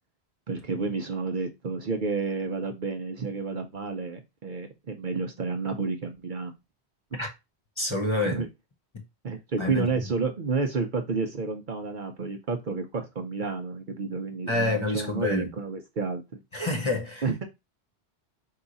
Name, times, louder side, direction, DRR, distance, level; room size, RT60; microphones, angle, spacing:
voice 1, 0.5-6.5 8.2-8.5 9.2-16.2 17.2-17.4, right 4 dB, 50° right, 0.8 m, -30 dB
voice 2, 7.8-8.4 9.6-9.9 14.5-15.5 16.5-17.2, left 2 dB, 30° left, 1.0 m, -27 dB
4.7 x 2.4 x 3.9 m
omnidirectional pair, 1.1 m